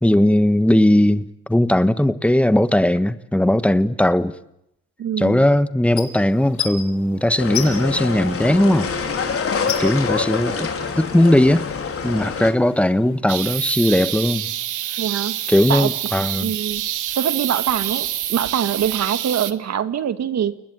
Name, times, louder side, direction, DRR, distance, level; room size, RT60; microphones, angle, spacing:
voice 1, 0.0-4.3 5.2-8.9 9.8-10.7 11.0-11.7 12.0-14.5 15.5-16.5, left 1 dB, 5° left, 1.4 m, -18 dB
voice 2, 5.0-5.4 15.0-15.4 15.7-15.9 16.4-16.8 17.2-20.5, right 9 dB, 60° right, 1.9 m, -23 dB
sound 1, 5.9-13.2, left 8 dB, 75° left, 7.5 m, -35 dB
sound 2, 7.4-12.5, left 5 dB, 50° left, 4.5 m, -26 dB
sound 3, 13.3-19.5, right 12 dB, 80° right, 1.6 m, -27 dB
30.0 x 20.0 x 9.3 m
cardioid pair, 90°, 30 cm